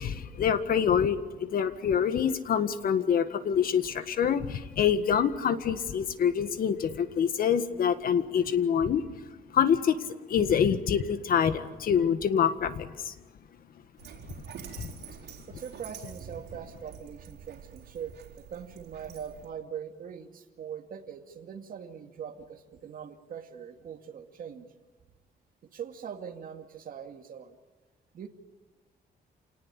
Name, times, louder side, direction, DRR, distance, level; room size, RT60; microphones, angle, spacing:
voice 1, 0.0-9.0 9.5-10.0 10.3-13.1 14.8-14.9, left 8 dB, 60° left, 10 dB, 1.8 m, -26 dB
Dog, 14.0-19.5, right 7 dB, 90° right, 4.2 m, -47 dB
voice 2, 15.5-24.7 25.6-27.6 28.1-28.3, right 8 dB, 60° right, 4 dB, 2.3 m, -42 dB
28.0 x 19.0 x 10.0 m, 1.2 s
cardioid pair, 130°, 17 cm